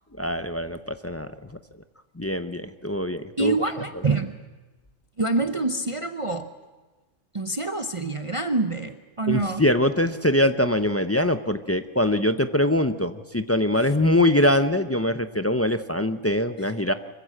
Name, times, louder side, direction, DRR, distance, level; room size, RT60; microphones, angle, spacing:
voice 1, 0.2-1.3 2.2-3.7 9.3-16.9, left 1 dB, 20° left, 9 dB, 0.4 m, -23 dB
voice 2, 3.4-4.4 5.2-6.5 7.3-9.6, right 3 dB, 30° right, 7 dB, 0.7 m, -26 dB
25.0 x 15.0 x 7.5 m, 1.2 s
omnidirectional pair, 1.3 m